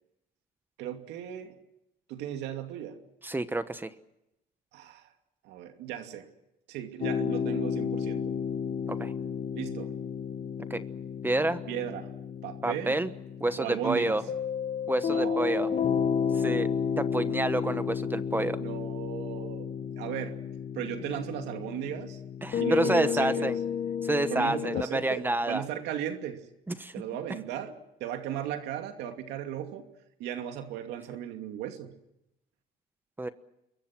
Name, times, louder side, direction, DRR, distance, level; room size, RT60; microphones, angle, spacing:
voice 1, 0.8-1.6 2.1-3.0 4.7-5.1 5.4-6.3 6.7-8.3 9.5-9.9 11.7-12.1 12.4-13.0 13.6-14.2 15.1-16.7 18.6-20.4 20.7-22.2 22.6-23.5 24.3-26.4 26.9-29.8 30.2-32.0, right 10 dB, 90° right, 6 dB, 2.6 m, -36 dB
voice 2, 3.2-3.9 8.9-9.1 10.7-10.8 11.2-11.6 12.6-13.1 13.4-14.2 14.9-15.7 16.3-16.7 17.0-18.6 22.4-23.6 24.0-25.6 26.7-26.9 33.2-33.3, right 2 dB, 10° right, 12 dB, 1.2 m, -28 dB
sound 1, 7.0-24.8, left 7 dB, 45° left, 1.2 m, -32 dB
27.5 x 22.5 x 6.2 m, 0.86 s
cardioid pair, 110°, 17 cm